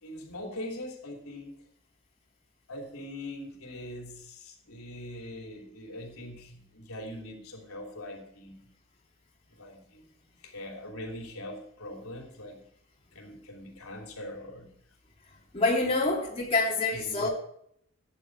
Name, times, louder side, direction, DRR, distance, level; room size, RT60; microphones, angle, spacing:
voice 1, 0.0-1.5 2.7-8.6 9.6-10.0 10.4-12.6 13.1-14.7 16.9-17.3, left 1 dB, 85° left, 2 dB, 3.2 m, -42 dB
voice 2, 15.5-17.3, left 3 dB, 25° left, -4 dB, 2.9 m, -26 dB
13.0 x 10.0 x 4.8 m, 0.68 s
head